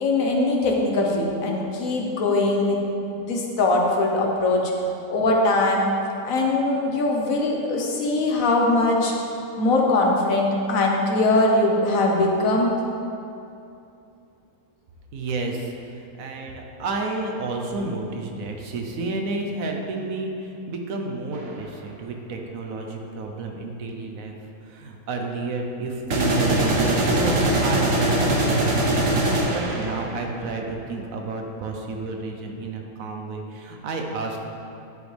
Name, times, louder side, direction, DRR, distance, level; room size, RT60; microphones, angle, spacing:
voice 1, 0.0-2.8 3.2-4.7 5.1-5.9 6.2-9.1 9.6-12.7, left 2 dB, 70° left, 0 dB, 1.3 m, -21 dB
voice 2, 15.1-24.3 24.6-34.5, right 3 dB, 75° right, 2 dB, 1.2 m, -31 dB
sound 1, 21.3-21.5 26.1-30.3, right 1 dB, 50° right, 1.1 m, -22 dB
11.0 x 5.1 x 3.3 m, 2.6 s
omnidirectional pair, 1.5 m